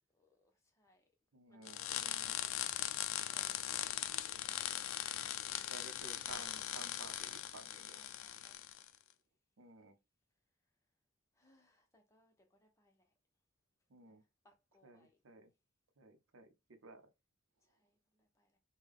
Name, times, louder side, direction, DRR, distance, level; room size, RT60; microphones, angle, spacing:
voice 1, 0.1-1.0 1.5-2.1 2.7-4.2 7.9-8.6 11.3-13.1 14.0-15.2 17.6-18.6, left 1 dB, 15° left, 0.9 m, -71 dB
voice 2, 1.3-2.4 5.7-8.0 9.6-9.9 13.9-14.2 14.8-15.5 16.0-17.1, right 3 dB, 85° right, 0.7 m, -55 dB
sound 1, 1.7-8.9, left 12 dB, 85° left, 0.4 m, -40 dB
3.5 x 2.3 x 3.5 m
head